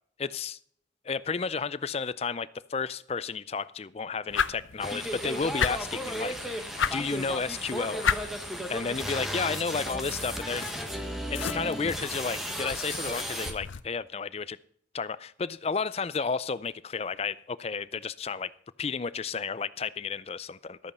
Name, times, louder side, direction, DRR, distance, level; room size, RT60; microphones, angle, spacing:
voice 1, 0.2-0.6 1.0-8.1 8.7-10.6 11.3-14.6 14.9-18.5 18.8-20.8, left 5 dB, 30° left, 0.4 m, -32 dB
sound 1, 4.3-13.8, left 7 dB, 85° left, 0.6 m, -35 dB
sound 2, 4.8-13.5, equal, ahead, 1.2 m, -35 dB
13.0 x 8.6 x 5.4 m
head